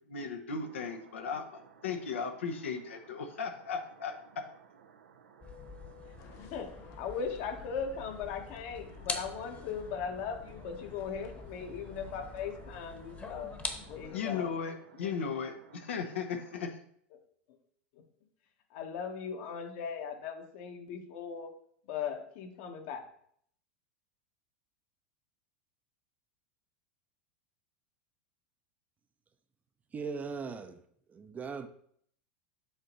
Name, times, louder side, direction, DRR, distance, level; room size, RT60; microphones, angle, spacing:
voice 1, 0.1-4.5 14.1-16.8, left 5 dB, 85° left, 1.0 m, -36 dB
sound 1, 0.6-16.7, right 7 dB, 90° right, 0.7 m, -58 dB
sound 2, 5.4-14.1, left 4 dB, 20° left, 1.1 m, -44 dB
sound 3, 6.2-14.6, left 9 dB, 45° left, 0.8 m, -56 dB
voice 2, 6.4-13.6 13.9-14.5 15.0-15.1 17.5-17.6 17.9-18.0 18.7-21.5 21.8-23.0, left 6 dB, 65° left, 1.3 m, -39 dB
voice 3, 29.9-30.8 31.1-31.7, right 5 dB, 25° right, 0.6 m, -39 dB
7.8 x 3.0 x 5.3 m
hypercardioid pair, 100°, 7 cm